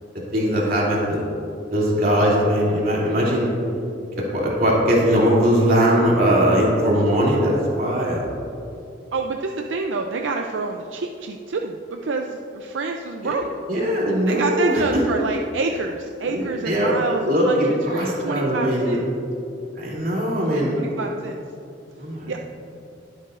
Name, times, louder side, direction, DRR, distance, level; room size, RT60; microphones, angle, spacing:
voice 1, 0.3-1.2 1.7-3.5 4.2-8.2 13.2-13.3 13.7-15.0 16.3-17.0 17.3-19.0 19.8-20.8 22.0-22.4, equal, 50° right, -5 dB, 2.7 m, -20 dB
voice 2, 9.1-13.5 14.3-17.8 18.2-19.0 20.4-21.4 22.3-22.4, right 3 dB, 80° right, 3 dB, 0.5 m, -27 dB
21.0 x 8.0 x 2.5 m, 2.7 s
head